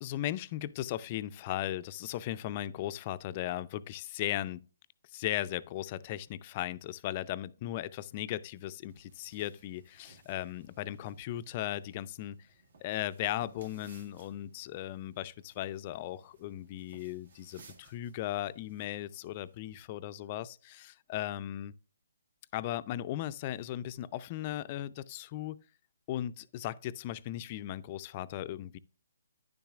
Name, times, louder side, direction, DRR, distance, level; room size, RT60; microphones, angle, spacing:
voice 1, 0.0-4.6 5.1-12.5 12.8-21.7 22.5-25.6 26.1-28.8, left 13 dB, 35° left, 0.4 m, -37 dB
sound 1, 8.9-19.8, right 4 dB, 70° right, 1.7 m, -61 dB
9.8 x 7.2 x 2.4 m
hypercardioid pair, 145°, 0 cm